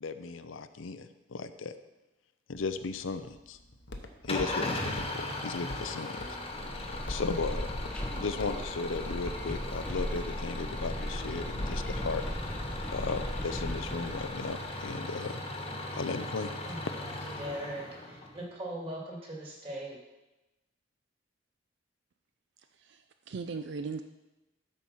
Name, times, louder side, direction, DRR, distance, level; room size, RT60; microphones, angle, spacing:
voice 1, 0.0-1.7 2.5-3.6 4.2-6.2 6.7-7.7 8.1-12.2 12.9-15.4 16.0-16.6, left 4 dB, 85° left, 10 dB, 0.6 m, -36 dB
Walk footsteps, 2.5-10.5, left 1 dB, 60° left, 0.9 m, -47 dB
Engine starting / Idling, 4.3-18.4, left 2 dB, 30° left, 1.2 m, -38 dB
sound 1, 6.4-15.0, equal, 5° left, 0.7 m, -37 dB
voice 2, 16.6-17.1 17.4-20.0, right 1 dB, 30° right, -3 dB, 2.5 m, -40 dB
voice 3, 22.6-24.0, right 4 dB, 60° right, 8 dB, 0.4 m, -39 dB
12.5 x 4.6 x 5.6 m, 1.0 s
head